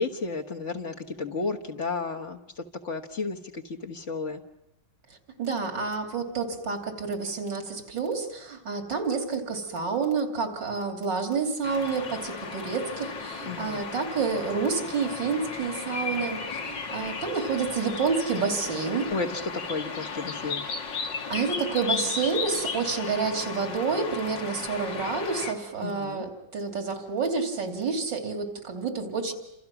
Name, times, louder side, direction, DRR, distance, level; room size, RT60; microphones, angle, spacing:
voice 1, 0.0-4.4 13.4-13.8 19.1-20.6 25.8-26.2, left 3 dB, 45° left, 2 dB, 1.7 m, -32 dB
voice 2, 5.4-19.1 21.3-29.3, right 5 dB, 85° right, 4 dB, 3.5 m, -29 dB
sound 1, 11.6-25.5, left 5 dB, 80° left, 2.7 m, -35 dB
29.0 x 26.5 x 6.1 m, 0.84 s
omnidirectional pair, 1.9 m